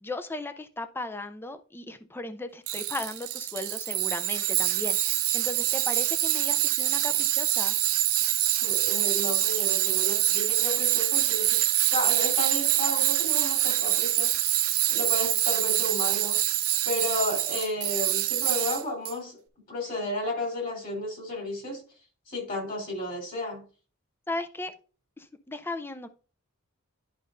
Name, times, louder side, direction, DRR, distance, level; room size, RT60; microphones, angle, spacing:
voice 1, 0.0-7.8 24.3-24.7 25.2-26.1, left 2 dB, 10° left, 10 dB, 0.4 m, -36 dB
Tools, 2.7-19.1, right 14 dB, 75° right, 0.6 m, -25 dB
voice 2, 8.5-11.6 11.9-16.4 16.8-19.4 19.7-21.8 22.3-23.6, left 2 dB, 40° left, 0 dB, 3.4 m, -33 dB
11.0 x 5.3 x 2.5 m, 0.38 s
head